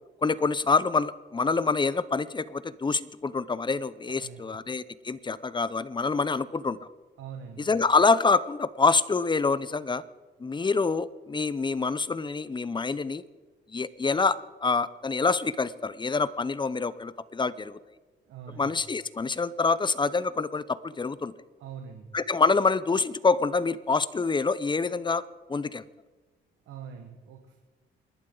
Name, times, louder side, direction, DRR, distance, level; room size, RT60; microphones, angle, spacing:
voice 1, 0.2-6.8 7.7-10.0 10.4-13.2 13.7-17.8 18.6-21.3 22.1-25.2 25.5-25.8, left 4 dB, 25° left, 16 dB, 0.7 m, -26 dB
voice 2, 4.2-4.6 7.2-7.7 18.3-18.8 21.6-22.2 26.7-27.6, right 7 dB, 85° right, 4 dB, 1.6 m, -43 dB
28.0 x 11.5 x 3.9 m, 1.3 s
cardioid pair, 90°, 20 cm